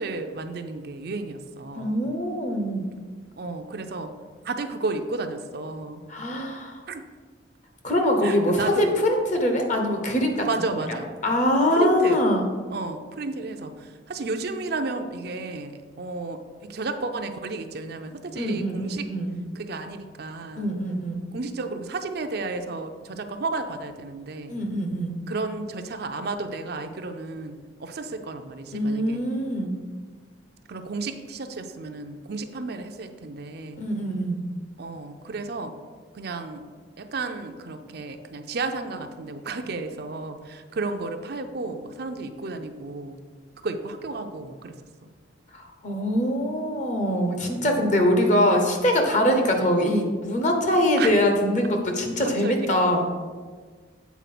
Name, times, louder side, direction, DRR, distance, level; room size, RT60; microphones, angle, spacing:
voice 1, 0.0-1.9 3.4-4.1 4.4-6.0 6.9-7.0 8.2-8.9 10.5-11.1 11.7-12.2 12.7-19.1 19.6-20.7 21.3-24.5 25.3-29.2 30.7-33.8 34.8-35.8 36.1-36.6 37.0-43.2 43.6-44.8 51.0-51.1 52.4-52.5, right 3 dB, 55° right, 6 dB, 0.5 m, -32 dB
voice 2, 1.7-2.8 6.1-6.8 7.8-12.5 18.3-19.4 20.6-21.2 24.5-25.2 28.7-29.7 33.8-34.4 45.5-53.1, equal, 40° left, 3 dB, 1.1 m, -23 dB
8.2 x 4.2 x 5.9 m, 1.5 s
head